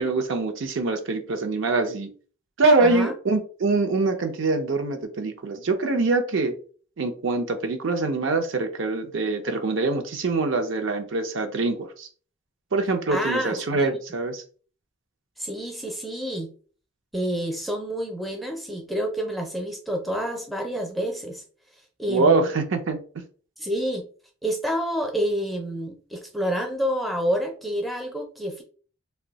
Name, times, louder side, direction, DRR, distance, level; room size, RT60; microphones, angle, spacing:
voice 1, 0.0-2.1 2.6-6.5 7.0-12.1 12.7-14.4 22.1-23.0, right 3 dB, 65° right, 6 dB, 0.5 m, -24 dB
voice 2, 2.6-3.1 13.1-13.9 15.4-16.5 17.1-21.4 22.0-22.5 23.6-24.0 24.4-28.6, equal, ahead, 2 dB, 0.4 m, -28 dB
2.6 x 2.1 x 3.9 m, 0.40 s
head